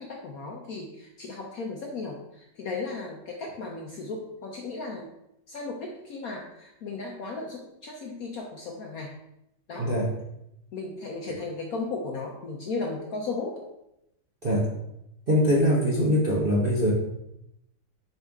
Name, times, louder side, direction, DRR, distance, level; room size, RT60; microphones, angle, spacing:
voice 1, 0.0-5.1 5.5-9.1 9.7-9.9 10.7-13.6, left 3 dB, 65° left, 0 dB, 0.9 m, -35 dB
voice 2, 15.3-16.9, equal, 45° right, -5 dB, 0.7 m, -22 dB
5.3 x 5.1 x 3.5 m, 0.83 s
omnidirectional pair, 2.2 m